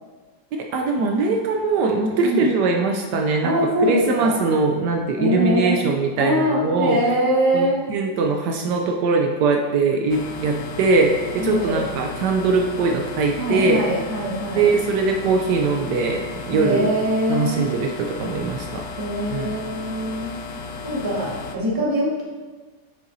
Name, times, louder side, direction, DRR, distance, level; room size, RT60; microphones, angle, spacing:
voice 1, 0.5-3.5 3.8-7.0 7.5-13.8 14.6-17.0 17.3-18.8 19.3-19.5, right 4 dB, 75° right, 2 dB, 1.1 m, -21 dB
voice 2, 3.4-4.3 5.2-5.8 6.2-7.9 11.4-11.9 13.3-14.7 16.5-17.8 19.0-20.3 20.8-22.2, equal, 15° right, -4 dB, 0.9 m, -23 dB
sound 1, 10.1-21.6, left 4 dB, 75° left, 1.2 m, -34 dB
7.0 x 6.4 x 2.6 m, 1.4 s
omnidirectional pair, 1.9 m